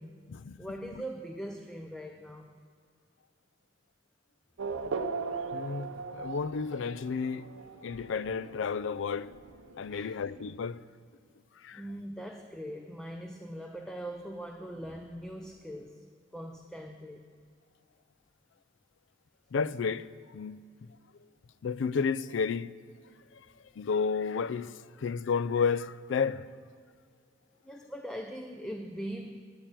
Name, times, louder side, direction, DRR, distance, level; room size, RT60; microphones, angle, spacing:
voice 1, 0.6-2.5 9.9-10.2 11.7-16.0 16.3-17.3 27.6-29.4, equal, 5° left, 0.5 m, -41 dB
Race car auto racing / Accelerating revving vroom, 4.6-10.7, right 4 dB, 85° right, 0.7 m, -39 dB
voice 2, 5.5-5.9 6.1-7.5 7.8-9.3 9.8-10.8 11.7-11.8 19.5-20.1 20.3-20.6 21.6-22.7 23.8-24.7 25.0-26.4, left 5 dB, 65° left, 0.4 m, -31 dB
9.0 x 8.7 x 9.1 m
head